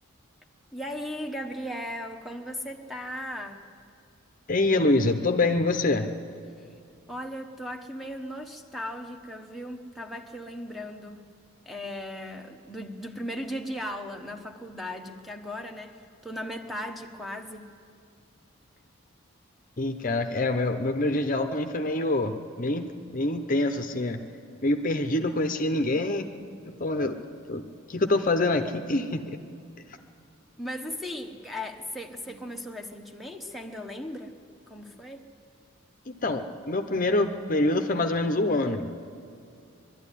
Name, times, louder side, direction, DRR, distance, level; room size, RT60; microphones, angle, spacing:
voice 1, 0.7-3.6 6.6-6.7 7.1-11.3 11.7-17.7 30.6-34.3 34.7-35.3, equal, ahead, 4 dB, 1.0 m, -37 dB
voice 2, 4.5-6.1 19.8-22.9 23.1-24.2 24.6-26.3 26.7-27.2 27.5-27.6 27.9-29.2 36.1-38.9, left 2 dB, 40° left, 7 dB, 0.8 m, -25 dB
22.0 x 12.5 x 9.9 m, 2.4 s
head